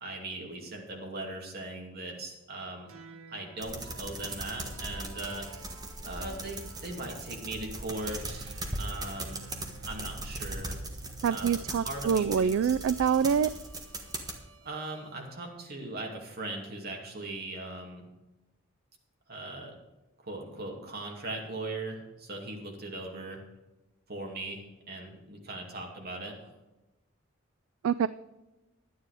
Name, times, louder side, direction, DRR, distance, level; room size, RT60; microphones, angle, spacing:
voice 1, 0.0-2.9 3.3-5.7 6.0-9.5 9.8-10.8 11.3-12.6 14.6-18.0 19.3-19.7 20.2-23.4 24.1-26.5, right 2 dB, 45° right, 0 dB, 2.4 m, -39 dB
sound 1, 2.9-15.4, right 5 dB, 90° right, 1.1 m, -52 dB
sound 2, 3.6-14.4, right 2 dB, 20° right, 1.4 m, -39 dB
voice 2, 11.2-13.5 27.8-28.1, right 7 dB, 65° right, 16 dB, 0.3 m, -25 dB
11.0 x 9.6 x 4.9 m, 1.0 s
head